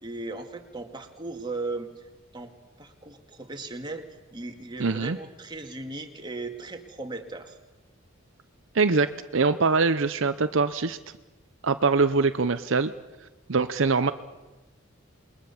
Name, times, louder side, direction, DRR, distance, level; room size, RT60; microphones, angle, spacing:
voice 1, 0.0-1.9 2.3-2.5 2.8-7.6, right 3 dB, 20° right, 4 dB, 2.2 m, -37 dB
voice 2, 4.8-5.2 8.7-9.1 9.3-11.0 11.6-12.9 13.5-14.1, right 4 dB, 65° right, 10 dB, 0.7 m, -23 dB
28.0 x 21.5 x 7.2 m, 1.2 s
head